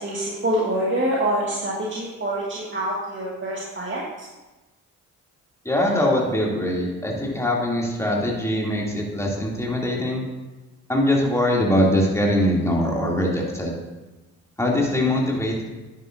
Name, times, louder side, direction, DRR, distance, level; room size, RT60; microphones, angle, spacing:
voice 1, 0.0-4.0, right 1 dB, 30° right, -5 dB, 2.1 m, -25 dB
voice 2, 5.6-10.2 10.9-13.7 14.6-15.6, left 1 dB, 5° left, -3 dB, 2.8 m, -22 dB
10.5 x 9.1 x 2.7 m, 1.1 s
supercardioid pair, 50°, 39 cm